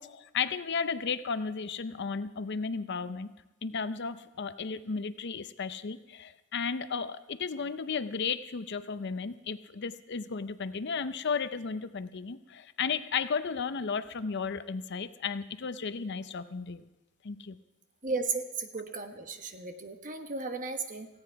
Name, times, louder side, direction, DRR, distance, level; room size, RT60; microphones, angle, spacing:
voice 1, 0.0-3.3 3.6-16.8 17.2-17.6, left 5 dB, 55° left, 13 dB, 0.6 m, -34 dB
voice 2, 18.0-21.1, right 4 dB, 40° right, 6 dB, 1.3 m, -35 dB
17.5 x 16.0 x 4.7 m, 1.0 s
head